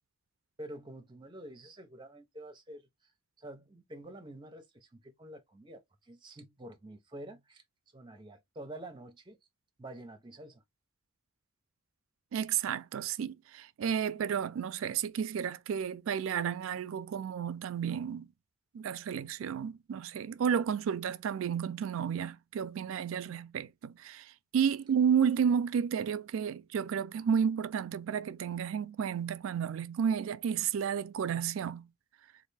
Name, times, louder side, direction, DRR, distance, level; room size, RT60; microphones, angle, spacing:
voice 1, 0.6-3.1 3.4-7.6 7.9-9.4 9.8-10.6, right 1 dB, 20° right, 0.7 m, -48 dB
voice 2, 12.3-18.3 18.7-24.3 24.5-31.9, right 7 dB, 70° right, 0.3 m, -32 dB
3.2 x 2.5 x 3.2 m
head